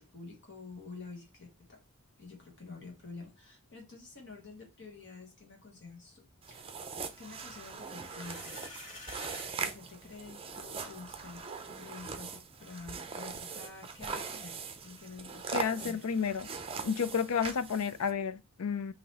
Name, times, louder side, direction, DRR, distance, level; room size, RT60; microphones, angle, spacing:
voice 1, 0.1-1.8 2.2-6.8 7.2-9.0 9.6-15.4 15.8-16.0, left 4 dB, 55° left, 1.4 m, -49 dB
sound 1, 6.4-18.1, right 5 dB, 25° right, 0.6 m, -41 dB
sound 2, 7.9-9.5, left 3 dB, 35° left, 1.8 m, -47 dB
voice 2, 15.5-16.5 16.8-18.9, left 6 dB, 75° left, 0.5 m, -31 dB
3.9 x 2.9 x 4.1 m
head